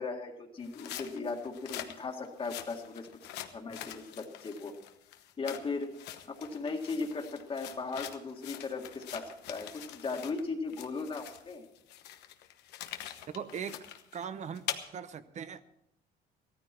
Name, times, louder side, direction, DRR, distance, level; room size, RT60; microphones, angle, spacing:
voice 1, 0.0-3.1 3.5-4.8 5.4-5.9 6.3-11.6, left 4 dB, 35° left, 2 dB, 2.0 m, -37 dB
sound 1, 0.6-10.4 10.7-14.8, left 12 dB, 90° left, 1.1 m, -44 dB
voice 2, 13.3-13.9 14.1-14.6 14.9-15.6, right 7 dB, 45° right, 12 dB, 0.9 m, -39 dB
15.5 x 14.0 x 4.5 m, 0.79 s
cardioid pair, 110°, 17 cm